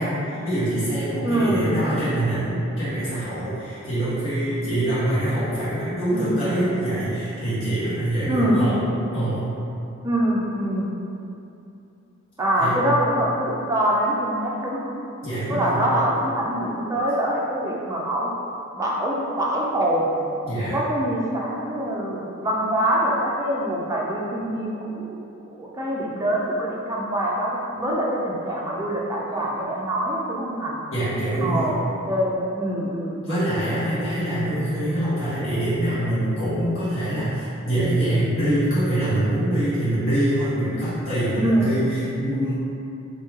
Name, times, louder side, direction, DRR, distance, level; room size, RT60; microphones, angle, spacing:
voice 1, 0.0-8.8 9.1-9.4 12.6-12.8 15.2-15.8 20.4-20.7 30.9-31.7 33.2-42.5, right 1 dB, 60° left, -14 dB, 1.3 m, -24 dB
voice 2, 1.2-1.7 8.3-8.7 10.0-10.9 12.4-14.9 15.5-18.3 18.8-20.1 20.7-25.2 25.4-30.8 31.4-31.8 32.1-33.5 41.4-41.8, right 1 dB, 15° right, -4 dB, 0.4 m, -24 dB
3.0 x 2.6 x 3.5 m, 2.7 s
head